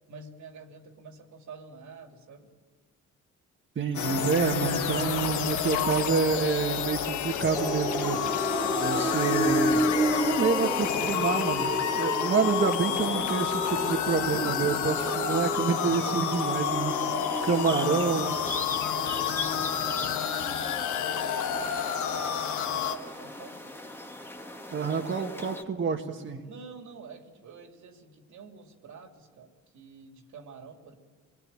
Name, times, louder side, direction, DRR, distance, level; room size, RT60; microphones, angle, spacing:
voice 1, 0.1-2.5 15.8-16.5 17.0-18.1 18.6-23.6 24.9-25.4 26.4-31.0, right 5 dB, 70° right, 4 dB, 2.9 m, -47 dB
voice 2, 3.8-8.2 8.8-9.8 10.2-17.0 17.5-18.4 24.7-26.4, right 5 dB, 40° right, 2 dB, 1.7 m, -28 dB
sound 1, 3.9-23.0, left 8 dB, 75° left, 1.4 m, -29 dB
sound 2, 7.5-25.6, right 1 dB, 10° left, 1.8 m, -33 dB
26.0 x 20.5 x 9.0 m, 1.5 s
cardioid pair, 90°, 30 cm